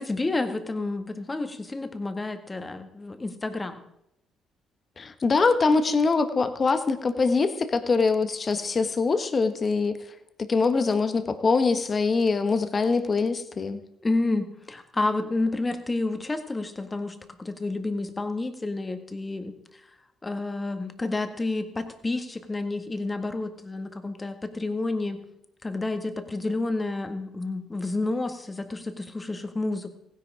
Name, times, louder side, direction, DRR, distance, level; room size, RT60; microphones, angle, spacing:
voice 1, 0.0-3.8 14.0-19.5 20.2-25.2 25.6-29.9, left 2 dB, 25° left, 7 dB, 1.8 m, -30 dB
voice 2, 5.0-10.0 10.5-13.8, left 4 dB, 40° left, 10 dB, 1.4 m, -23 dB
16.0 x 10.5 x 5.0 m, 0.79 s
supercardioid pair, 60°, 0 cm